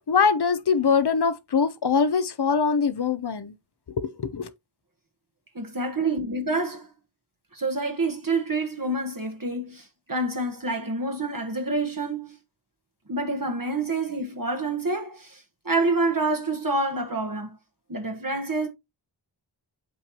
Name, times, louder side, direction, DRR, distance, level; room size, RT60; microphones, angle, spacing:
voice 1, 0.0-3.5 4.0-4.5, left 5 dB, 60° left, 0.8 m, -23 dB
voice 2, 5.5-6.9 7.5-12.4 13.1-17.6 17.9-18.7, right 2 dB, 45° right, 1.2 m, -27 dB
8.1 x 4.6 x 2.9 m
wide cardioid pair, 40°, 46 cm